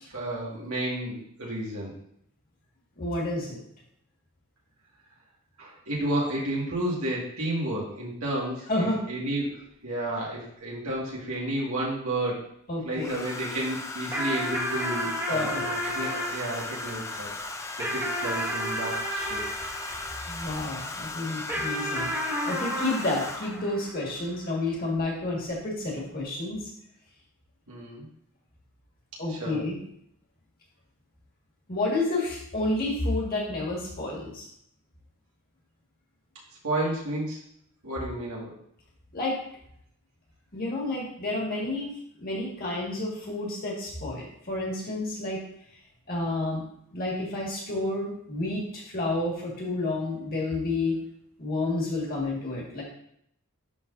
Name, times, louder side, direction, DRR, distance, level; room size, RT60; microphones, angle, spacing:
voice 1, 0.1-1.9 5.6-9.6 9.8-12.4 12.8-17.3 17.8-19.4 27.7-28.1 29.3-29.6 36.6-37.4 37.8-38.5, right 1 dB, 75° right, -5 dB, 2.0 m, -31 dB
voice 2, 3.0-3.6 8.7-9.0 12.7-13.2 15.3-15.6 20.3-22.1 22.4-26.7 29.2-29.8 31.7-34.5 39.1-39.4 40.5-45.4 46.1-46.6 46.9-51.0 51.4-52.8, left 2 dB, 40° left, -4 dB, 1.9 m, -30 dB
Domestic sounds home sounds, 9.4-9.5 10.9-11.6 13.0-23.7 25.0-25.2 25.5-25.9, left 3 dB, 15° left, 0.4 m, -37 dB
sound 1, 14.1-20.8 21.5-24.3, equal, 10° right, 1.2 m, -33 dB
10.5 x 3.9 x 2.7 m, 0.70 s
head